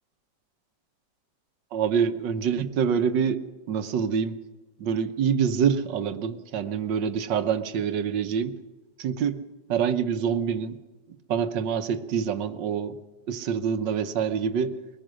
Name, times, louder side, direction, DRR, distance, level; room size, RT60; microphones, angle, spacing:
voice 1, 1.7-3.4 3.7-4.4 4.8-8.5 9.0-9.4 9.7-10.8 11.3-13.0 13.3-14.8, right 7 dB, 75° right, 10 dB, 1.6 m, -26 dB
22.0 x 18.5 x 6.3 m, 1.2 s
omnidirectional pair, 1.9 m